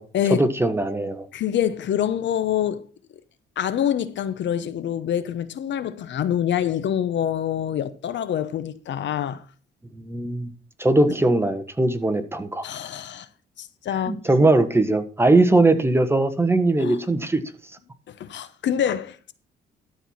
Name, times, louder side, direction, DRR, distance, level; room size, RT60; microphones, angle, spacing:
voice 1, 0.3-1.3 9.9-10.5 10.8-12.7 14.1-17.4, right 2 dB, 10° right, 1.3 m, -20 dB
voice 2, 1.3-2.8 3.6-9.4 12.6-13.3 13.6-14.2 16.8-17.0 18.1-19.3, left 10 dB, 65° left, 0.8 m, -26 dB
13.0 x 4.6 x 5.6 m
cardioid pair, 90°, 20 cm